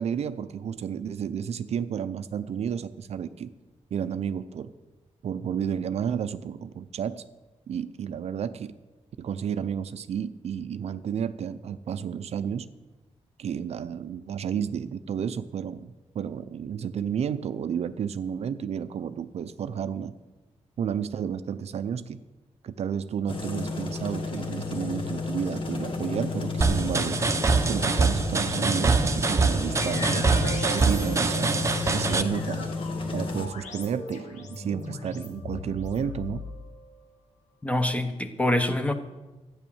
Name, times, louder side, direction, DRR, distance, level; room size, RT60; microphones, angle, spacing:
voice 1, 0.0-3.5 3.9-4.7 5.2-7.2 7.7-8.8 9.2-12.7 13.4-20.1 20.8-22.2 22.6-27.2 27.7-30.3 30.7-31.5 31.9-32.7 33.1-36.5, right 8 dB, 65° right, 12 dB, 0.6 m, -31 dB
sound 1, 23.3-33.5, left 3 dB, 50° left, 1.7 m, -32 dB
dnb full, 26.6-32.2, right 4 dB, 25° right, 0.8 m, -24 dB
sound 2, 29.8-37.0, left 2 dB, 85° left, 2.0 m, -39 dB
voice 2, 37.6-38.9, left 1 dB, 10° left, 7 dB, 1.0 m, -25 dB
13.0 x 9.7 x 7.1 m, 1.1 s
wide cardioid pair, 145°, 12 cm